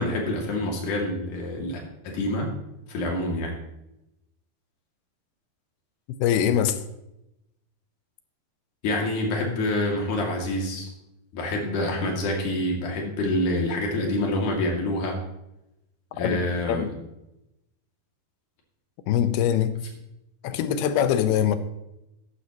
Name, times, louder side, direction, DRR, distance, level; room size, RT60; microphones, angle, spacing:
voice 1, 0.0-1.8 2.0-2.5 2.9-3.6 8.8-10.9 11.3-15.2 16.1-16.9, left 1 dB, 55° left, 0 dB, 3.7 m, -27 dB
voice 2, 6.2-6.8 16.2-16.4 16.7-16.9 19.1-19.8 20.4-21.6, left 9 dB, 85° left, 10 dB, 2.8 m, -22 dB
14.0 x 11.0 x 3.0 m, 0.87 s
omnidirectional pair, 4.4 m